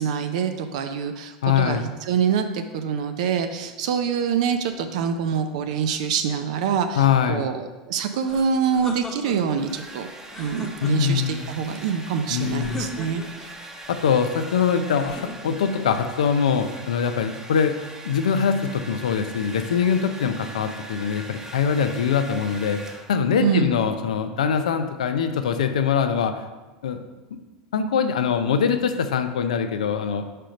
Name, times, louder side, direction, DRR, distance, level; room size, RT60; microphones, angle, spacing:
voice 1, 0.0-10.1 10.4-13.2 23.4-23.8, right 7 dB, 70° right, 7 dB, 0.5 m, -25 dB
voice 2, 1.4-1.8 7.0-7.5 10.8-11.5 12.3-12.8 13.9-17.8 18.0-22.8 23.1-26.4 26.8-27.0 27.3-27.4 27.7-30.3, left 7 dB, 80° left, 8 dB, 0.5 m, -23 dB
sound 1, 8.2-9.6 10.2-11.3 12.6-13.5 15.0-15.8, left 2 dB, 15° left, 1.1 m, -37 dB
Domestic sounds home sounds, 9.4-23.4, right 1 dB, 15° right, 0.9 m, -41 dB
5.0 x 4.4 x 5.2 m, 1.2 s
hypercardioid pair, 90°, 4 cm